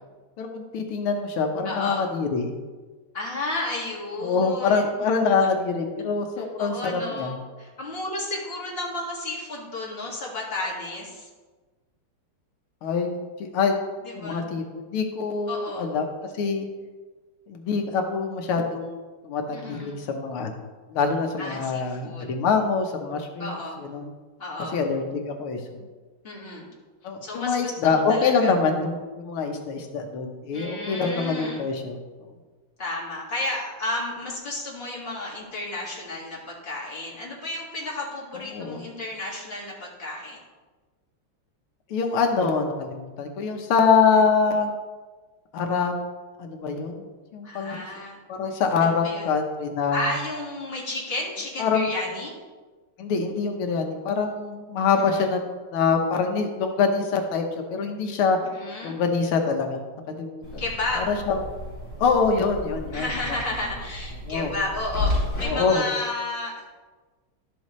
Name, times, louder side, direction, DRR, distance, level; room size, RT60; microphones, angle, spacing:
voice 1, 0.4-2.5 4.2-7.4 12.8-13.8 14.2-14.6 14.9-16.1 16.4-16.7 17.5-19.0 19.2-20.5 20.9-24.1 24.7-25.8 27.0-32.0 38.5-38.8 41.9-44.8 45.5-46.0 46.4-47.8 48.3-50.1 51.6-51.9 53.0-55.4 55.7-57.4 57.7-58.4 58.8-59.8 60.1-60.6 61.0-61.4 62.0-63.4 64.3-64.5 65.4-65.8, left 5 dB, 75° left, 4 dB, 1.8 m, -25 dB
voice 2, 1.6-2.0 3.1-5.5 6.0-6.2 6.6-11.3 14.0-14.5 15.5-15.9 19.5-20.0 21.4-22.3 23.4-23.8 24.4-24.8 26.2-26.7 27.2-28.5 30.5-31.6 32.8-40.4 44.1-44.2 47.4-48.2 48.8-49.3 49.9-52.3 54.9-55.3 58.5-59.0 60.6-61.0 62.9-66.7, left 2 dB, 30° left, -4 dB, 2.0 m, -32 dB
sound 1, 60.4-65.5, left 2 dB, 5° left, 3.0 m, -32 dB
12.0 x 6.9 x 3.1 m, 1.3 s
omnidirectional pair, 2.4 m